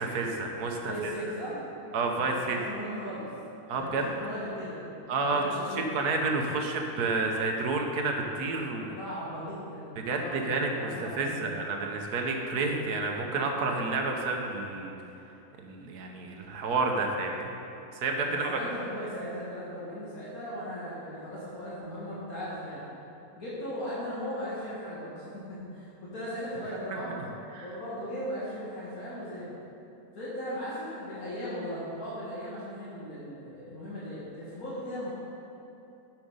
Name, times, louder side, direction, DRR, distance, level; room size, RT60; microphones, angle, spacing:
voice 1, 0.0-1.1 1.9-2.6 3.7-4.0 5.1-5.4 5.7-9.0 10.1-10.9 11.2-14.9 15.6-17.5 17.9-18.6 26.9-27.0 27.5-27.7, right 3 dB, 80° right, 2 dB, 1.4 m, -30 dB
voice 2, 0.7-1.6 2.1-3.3 3.8-4.9 5.2-6.1 9.0-11.6 18.3-22.8 23.4-27.2 27.6-29.5 30.1-35.1, equal, 65° left, -10 dB, 2.1 m, -38 dB
7.5 x 6.5 x 5.5 m, 2.9 s
omnidirectional pair, 1.6 m